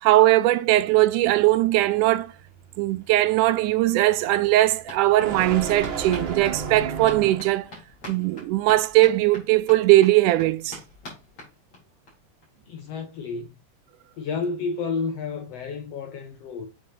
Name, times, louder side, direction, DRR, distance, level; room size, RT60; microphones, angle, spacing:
voice 1, 0.0-2.3 2.8-7.7 8.1-10.8, right 16 dB, 80° right, 1.9 m, -20 dB
sound 1, 0.7-7.7, right 5 dB, 50° right, 1.6 m, -35 dB
sound 2, 3.3-3.4 3.6-12.1 12.4-12.5 12.8-12.9 13.1-13.2, left 2 dB, 40° left, 4.7 m, -45 dB
voice 2, 12.7-13.5 14.2-16.7, left 4 dB, 70° left, 1.6 m, -31 dB
8.7 x 5.3 x 2.6 m
omnidirectional pair, 3.7 m